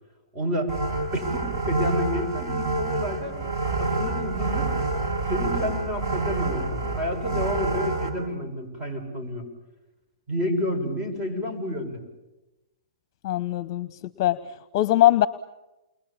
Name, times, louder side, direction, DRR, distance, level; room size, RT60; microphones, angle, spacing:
voice 1, 0.3-0.7 1.1-3.4 3.8-4.8 5.3-9.5 10.3-12.0, left 1 dB, 25° right, 3 dB, 6.8 m, -30 dB
sound 1, 0.7-8.1, right 3 dB, 40° right, 7.8 m, -27 dB
voice 2, 13.2-15.3, left 14 dB, 45° left, 14 dB, 0.9 m, -22 dB
29.5 x 22.0 x 8.8 m, 1.0 s
hypercardioid pair, 130°, 3 cm